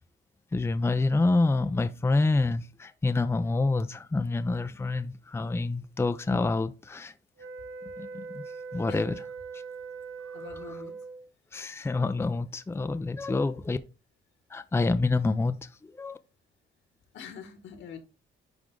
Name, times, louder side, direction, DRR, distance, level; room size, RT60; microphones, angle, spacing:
voice 1, 0.5-7.1 8.0-8.4 8.7-9.2 11.5-13.8 14.5-16.2, left 3 dB, 10° left, 0.5 m, -27 dB
sound 1, 7.4-11.3, right 5 dB, 80° right, 1.6 m, -41 dB
voice 2, 8.9-9.2 10.3-11.0 17.1-18.0, left 6 dB, 80° left, 2.1 m, -44 dB
10.0 x 3.6 x 3.8 m
cardioid pair, 90°, 20 cm